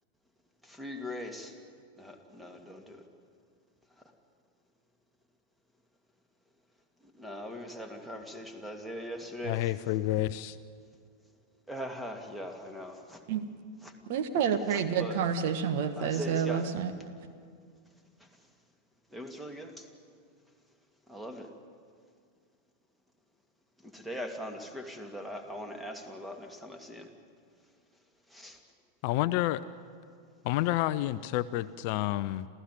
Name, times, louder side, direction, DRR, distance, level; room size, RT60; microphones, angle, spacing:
voice 1, 0.6-1.6 2.0-3.1 7.0-9.6 11.7-13.2 13.8-13.9 14.7-15.2 16.0-16.7 18.2-18.3 19.1-19.9 21.1-21.5 23.8-27.1 28.3-28.6, equal, 5° right, 5 dB, 2.4 m, -41 dB
voice 2, 9.4-10.6 29.0-29.6 30.4-32.5, left 15 dB, 45° left, 16 dB, 0.5 m, -29 dB
voice 3, 14.1-16.9, right 7 dB, 50° right, 9 dB, 1.5 m, -29 dB
27.5 x 15.5 x 9.6 m, 2.2 s
figure-of-eight pair, 90°, 0 cm